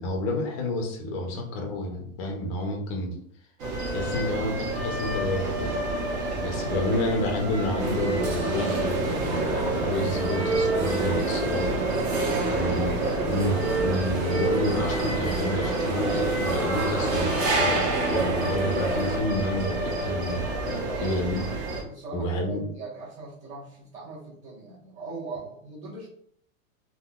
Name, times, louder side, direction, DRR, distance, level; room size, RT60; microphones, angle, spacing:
voice 1, 0.0-3.1 3.9-5.8 6.4-11.7 12.5-20.4 21.0-21.4 22.1-22.7, left 1 dB, 25° left, 2 dB, 0.5 m, -30 dB
sound 1, 3.6-21.8, right 2 dB, 55° right, 1.1 m, -29 dB
voice 2, 6.4-6.8 12.3-12.6 20.7-21.2 21.9-26.1, right 3 dB, 15° right, -7 dB, 1.2 m, -41 dB
sound 2, 7.8-19.2, right 2 dB, 35° right, 0.8 m, -29 dB
3.7 x 2.1 x 2.3 m, 0.67 s
supercardioid pair, 150°, 42 cm